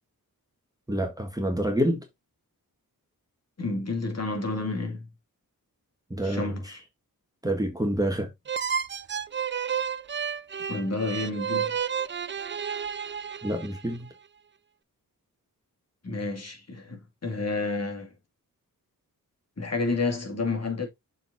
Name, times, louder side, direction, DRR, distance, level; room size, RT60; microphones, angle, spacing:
voice 1, 0.9-2.0 6.1-6.8 7.4-8.3 13.4-14.1, equal, 10° right, 1.5 m, -27 dB
voice 2, 3.6-5.1 6.2-6.8 10.7-11.8 16.0-18.1 19.6-20.9, left 3 dB, 45° left, 2.5 m, -30 dB
sound 1, 8.5-14.0, right 7 dB, 35° right, 0.4 m, -31 dB
6.9 x 4.1 x 4.0 m
wide cardioid pair, 115°, 36 cm